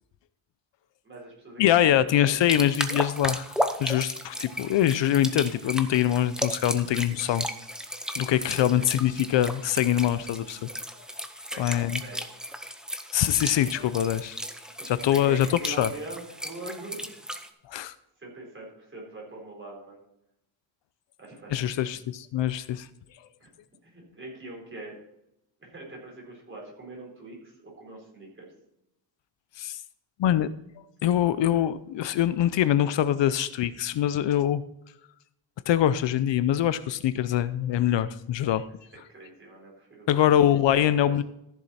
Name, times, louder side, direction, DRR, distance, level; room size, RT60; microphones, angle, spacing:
voice 1, 1.0-2.4 7.2-7.4 8.6-8.9 11.4-12.3 14.7-17.4 18.2-20.0 21.2-21.9 23.4-23.5 23.8-24.9 25.6-28.5 39.1-40.1 40.3-40.4 40.7-41.1, right 2 dB, 25° right, -2 dB, 4.4 m, -43 dB
voice 2, 1.6-7.5 8.2-10.7 11.6-12.0 13.1-14.4 14.9-15.9 17.7-17.9 21.5-22.9 29.6-29.8 30.2-30.5 31.0-34.6 35.7-38.7 40.1-41.2, left 11 dB, 65° left, 14 dB, 0.6 m, -24 dB
sound 1, 2.3-17.5, equal, ahead, 0.7 m, -35 dB
14.5 x 7.2 x 4.2 m, 0.81 s
wide cardioid pair, 155°, 47 cm